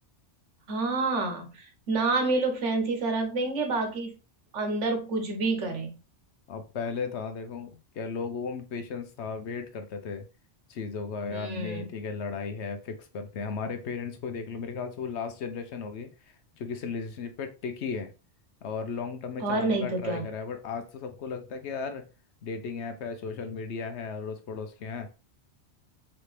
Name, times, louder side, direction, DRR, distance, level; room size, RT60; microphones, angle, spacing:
voice 1, 0.7-4.2 4.5-6.0 11.3-11.9 19.4-20.3, right 3 dB, 80° right, 4 dB, 1.3 m, -28 dB
voice 2, 6.5-10.2 10.7-18.1 18.6-22.0 22.4-25.1, left 5 dB, 70° left, 7 dB, 1.0 m, -35 dB
3.9 x 3.3 x 3.1 m, 0.31 s
omnidirectional pair, 1.2 m